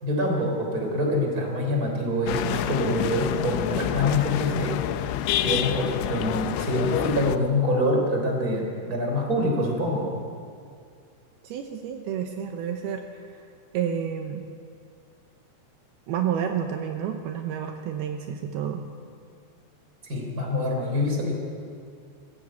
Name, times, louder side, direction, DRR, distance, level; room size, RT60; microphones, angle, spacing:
voice 1, 0.0-4.8 5.4-10.1 20.0-21.3, left 1 dB, 20° right, 1 dB, 3.3 m, -25 dB
sound 1, 2.3-7.4, left 12 dB, 80° left, 2.7 m, -27 dB
voice 2, 11.4-13.2 13.7-14.4 16.1-18.8, right 8 dB, 85° right, 5 dB, 2.2 m, -30 dB
21.5 x 15.0 x 8.5 m, 2.3 s
omnidirectional pair, 5.7 m